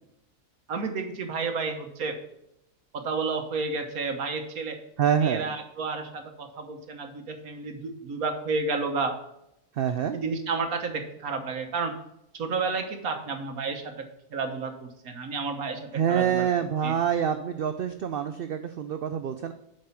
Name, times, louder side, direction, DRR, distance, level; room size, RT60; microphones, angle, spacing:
voice 1, 0.7-2.2 2.9-4.8 5.2-9.1 10.1-11.9 12.3-13.9 14.3-16.5 16.8-16.9, right 4 dB, 85° right, 5 dB, 1.6 m, -31 dB
voice 2, 5.0-5.6 9.7-10.2 15.9-19.5, right 8 dB, 65° right, 9 dB, 0.5 m, -26 dB
7.4 x 5.2 x 5.7 m, 0.81 s
omnidirectional pair, 1.5 m